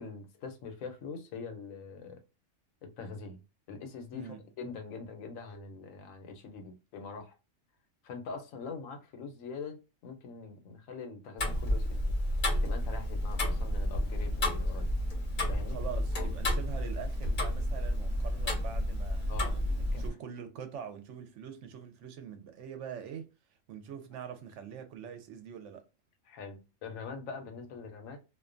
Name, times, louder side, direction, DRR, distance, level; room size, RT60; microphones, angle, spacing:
voice 1, 0.0-2.2 2.8-7.4 8.0-12.1 12.5-14.9 15.5-15.8 19.3-19.6 19.9-20.0 26.3-28.2, left 4 dB, 90° left, 1.1 m, -43 dB
Tick-tock, 11.4-20.1, left 1 dB, 45° left, 0.7 m, -31 dB
voice 2, 15.7-23.3 23.7-25.8, right 8 dB, 70° right, 0.8 m, -44 dB
2.4 x 2.2 x 2.4 m
omnidirectional pair, 1.4 m